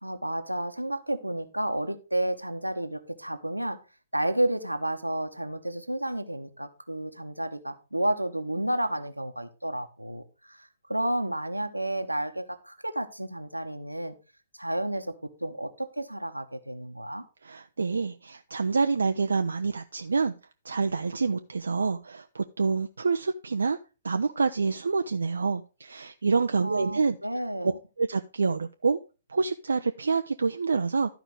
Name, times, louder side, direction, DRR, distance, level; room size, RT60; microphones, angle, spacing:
voice 1, 0.0-3.8 4.1-14.1 14.5-17.2 26.6-27.8, right 1 dB, 90° right, 8 dB, 1.1 m, -31 dB
voice 2, 17.4-20.3 20.6-23.8 24.0-27.2 28.0-29.0 29.3-31.1, right 4 dB, 65° right, 7 dB, 0.5 m, -27 dB
12.0 x 5.0 x 4.7 m, 0.32 s
figure-of-eight pair, 120°, 0 cm